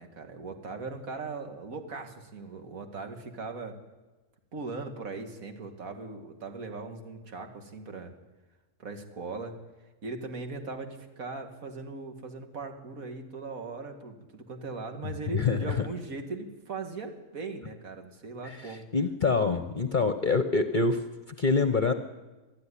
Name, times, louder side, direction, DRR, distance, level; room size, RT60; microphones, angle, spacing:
voice 1, 0.0-3.8 4.5-8.1 8.8-9.6 10.0-18.9, right 3 dB, 65° right, 5 dB, 2.5 m, -39 dB
voice 2, 15.3-15.9 18.4-21.0 21.4-21.9, left 4 dB, 35° left, 8 dB, 1.0 m, -26 dB
22.5 x 13.0 x 10.0 m, 1.2 s
omnidirectional pair, 1.5 m